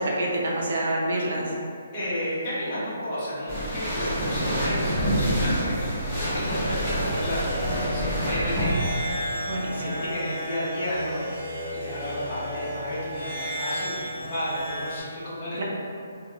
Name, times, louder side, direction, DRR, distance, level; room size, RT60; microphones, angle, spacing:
voice 1, 0.0-1.4 9.5-10.0 15.6-15.7, right 1 dB, 60° right, -3 dB, 0.5 m, -27 dB
voice 2, 1.9-7.4 7.7-9.0 9.6-15.6, equal, 35° left, -11 dB, 1.3 m, -32 dB
sound 1, 3.5-8.8, equal, 15° left, 1.2 m, -27 dB
sound 2, 6.3-15.0, equal, 20° right, 1.2 m, -33 dB
2.9 x 2.8 x 2.3 m, 2.4 s
figure-of-eight pair, 145°, 0 cm